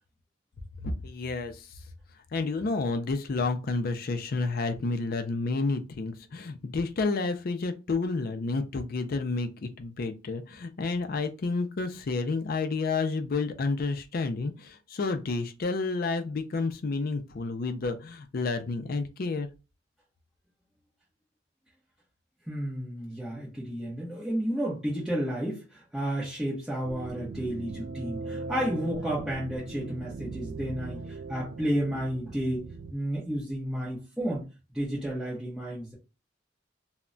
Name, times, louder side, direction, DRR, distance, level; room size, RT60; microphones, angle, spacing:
voice 1, 0.8-1.7 2.3-19.5, left 3 dB, 50° left, 0.4 m, -30 dB
voice 2, 22.5-32.7 32.9-34.4 34.7-35.9, equal, 5° right, 0.7 m, -32 dB
sound 1, 26.8-32.9, right 3 dB, 60° right, 0.3 m, -39 dB
2.2 x 2.1 x 3.7 m
head